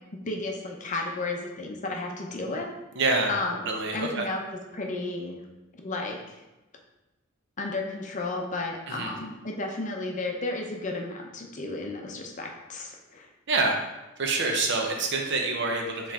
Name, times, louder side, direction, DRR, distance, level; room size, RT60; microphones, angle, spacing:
voice 1, 0.1-2.7 3.3-4.4 4.7-5.4 5.8-6.4 7.6-13.3, left 2 dB, 40° left, 1 dB, 0.6 m, -33 dB
voice 2, 3.0-3.3 3.7-4.3 8.9-9.1 13.5-13.8 14.2-16.1, right 3 dB, 60° right, 2 dB, 0.7 m, -26 dB
4.6 x 3.1 x 3.5 m, 1.0 s
head